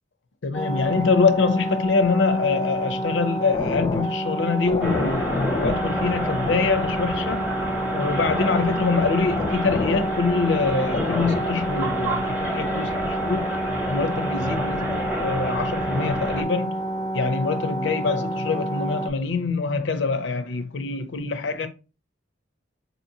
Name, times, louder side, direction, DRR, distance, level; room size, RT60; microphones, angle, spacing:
voice 1, 0.4-7.5 7.9-16.9 17.1-21.7, left 4 dB, 70° left, 0.5 m, -24 dB
sound 1, 0.5-19.1, equal, 20° left, 0.4 m, -28 dB
sound 2, 4.8-16.4, right 1 dB, 10° right, 0.7 m, -30 dB
4.0 x 2.9 x 2.6 m
head